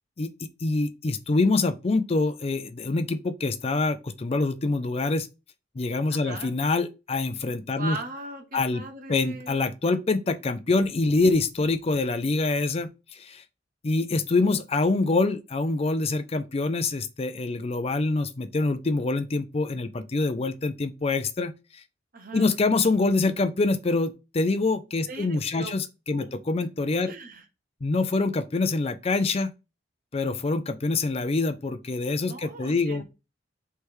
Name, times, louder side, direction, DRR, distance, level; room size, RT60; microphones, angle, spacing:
voice 1, 0.6-5.3 5.8-8.0 8.5-8.8 9.1-13.4 13.8-21.8 22.3-27.1 27.8-29.5 30.1-33.0, left 3 dB, 35° left, 0.4 m, -25 dB
voice 2, 6.1-6.5 7.7-9.6 22.1-22.5 25.1-25.8 26.1-26.3 27.0-27.4 32.2-33.0, right 2 dB, 50° right, 1.1 m, -39 dB
3.4 x 3.1 x 4.4 m
head